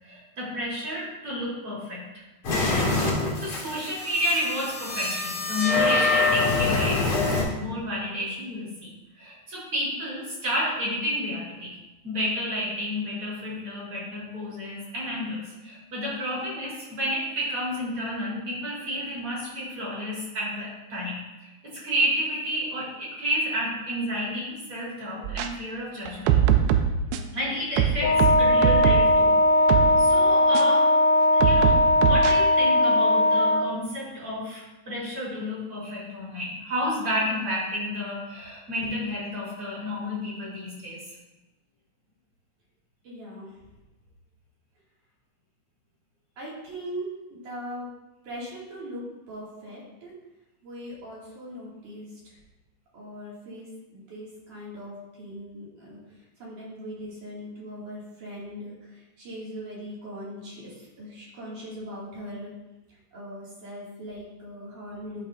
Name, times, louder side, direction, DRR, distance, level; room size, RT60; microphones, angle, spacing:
voice 1, 0.0-2.0 2.5-2.9 3.1-8.9 9.2-11.8 12.0-26.4 27.3-30.9 31.3-41.0, equal, 35° right, -6 dB, 3.4 m, -31 dB
sound 1, 2.4-7.4, left 3 dB, 45° left, 2.0 m, -25 dB
sound 2, 25.2-25.5 26.1-27.3 27.8-29.2 29.7-29.9 30.5-30.6 31.4-32.3, right 9 dB, 85° right, 2.3 m, -22 dB
Wind instrument woodwind instrument, 28.0-33.7, left 1 dB, 85° left, 2.9 m, -19 dB
voice 2, 43.0-43.5 46.4-47.9 48.2-50.1 50.6-52.4 52.9-62.5 62.9-65.3, equal, 50° right, -6 dB, 3.3 m, -40 dB
12.5 x 5.4 x 2.6 m, 1.0 s
omnidirectional pair, 5.0 m